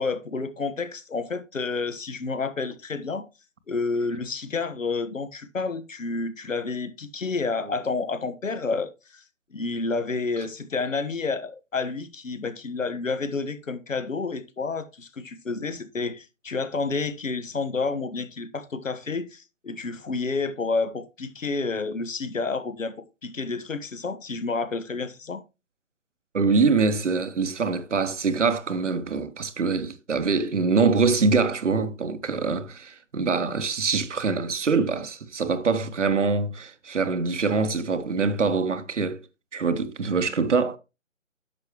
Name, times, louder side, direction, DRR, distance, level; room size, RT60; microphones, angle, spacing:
voice 1, 0.0-3.3 3.7-9.2 9.5-25.4, left 4 dB, 75° left, 1.4 m, -30 dB
voice 2, 26.3-39.2 39.5-40.8, right 4 dB, 65° right, 1.1 m, -24 dB
10.5 x 7.2 x 3.0 m
figure-of-eight pair, 150°, 39 cm